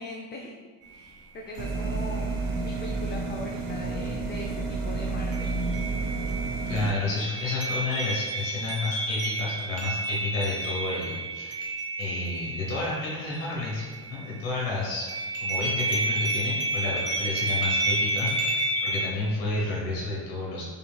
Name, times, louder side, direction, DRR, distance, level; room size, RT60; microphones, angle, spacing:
voice 1, 0.0-5.6, left 2 dB, 25° left, 0 dB, 0.4 m, -41 dB
sound 1, 0.8-0.9 1.5-2.1 5.3-14.5 14.8-19.0, right 2 dB, 30° right, 1.2 m, -30 dB
sound 2, 1.6-6.9, right 3 dB, 50° right, 0.6 m, -30 dB
voice 2, 6.7-11.6 12.0-15.1 15.4-20.6, left 3 dB, 80° left, -4 dB, 1.1 m, -31 dB
5.1 x 2.8 x 2.2 m, 1.5 s
hypercardioid pair, 60°, 47 cm